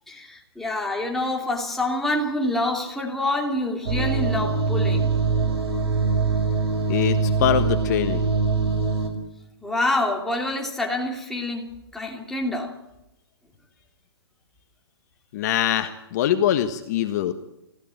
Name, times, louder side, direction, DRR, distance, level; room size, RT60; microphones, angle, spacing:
voice 1, 0.1-5.1 9.6-12.7, left 1 dB, ahead, -1 dB, 3.0 m, -27 dB
sound 1, 3.9-9.1, right 4 dB, 75° right, 5.7 m, -23 dB
voice 2, 6.9-8.3 15.3-17.3, left 11 dB, 40° left, 8 dB, 1.4 m, -23 dB
28.5 x 15.5 x 9.1 m, 0.90 s
hypercardioid pair, 150°, 13 cm